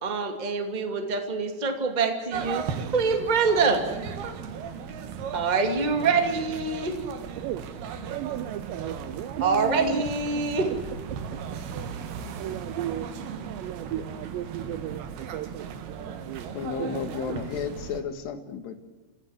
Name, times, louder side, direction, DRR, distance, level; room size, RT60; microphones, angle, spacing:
voice 1, 0.0-2.6 2.9-3.8 5.3-6.9 9.4-10.7, right 4 dB, 15° right, 5 dB, 1.5 m, -25 dB
sound 1, 2.3-18.0, right 7 dB, 70° right, 3.4 m, -37 dB
voice 2, 8.1-10.0 12.3-13.1 13.5-16.5 16.8-16.9 17.3-17.4, right 13 dB, 85° right, 14 dB, 3.1 m, -35 dB
voice 3, 16.5-18.8, left 6 dB, 75° left, 8 dB, 3.9 m, -33 dB
28.0 x 15.5 x 8.1 m, 1.2 s
omnidirectional pair, 4.9 m